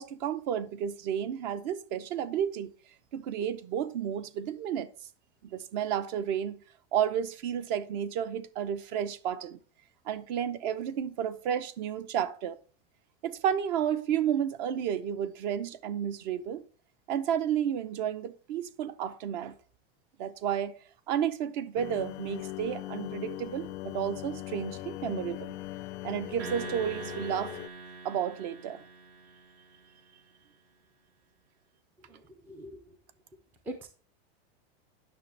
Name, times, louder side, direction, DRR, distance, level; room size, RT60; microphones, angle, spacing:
voice 1, 0.0-2.7 3.1-4.9 5.5-6.6 6.9-9.6 10.1-12.6 13.2-16.6 17.1-19.5 20.2-20.8 21.1-25.5 26.0-27.6 28.0-28.8, right 9 dB, 45° right, 0.7 m, -32 dB
sound 1, 21.8-27.7, left 17 dB, 85° left, 0.6 m, -40 dB
sound 2, 26.4-29.9, right 4 dB, 70° right, 2.5 m, -43 dB
voice 2, 32.0-33.0 33.6-33.9, right 1 dB, 5° right, 0.4 m, -43 dB
9.5 x 6.0 x 3.3 m
supercardioid pair, 175°, 32 cm